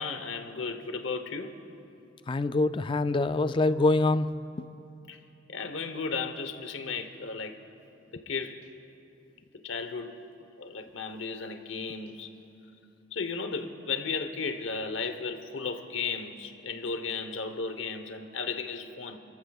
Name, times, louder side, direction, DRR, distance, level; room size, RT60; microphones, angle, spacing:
voice 1, 0.0-1.5 5.1-5.2 5.5-7.6 8.1-8.6 9.6-10.2 10.6-12.3 13.1-19.2, left 4 dB, 80° left, 8 dB, 1.0 m, -34 dB
voice 2, 2.3-4.3, left 2 dB, 25° left, 12 dB, 0.3 m, -24 dB
29.5 x 14.5 x 2.4 m, 2.8 s
head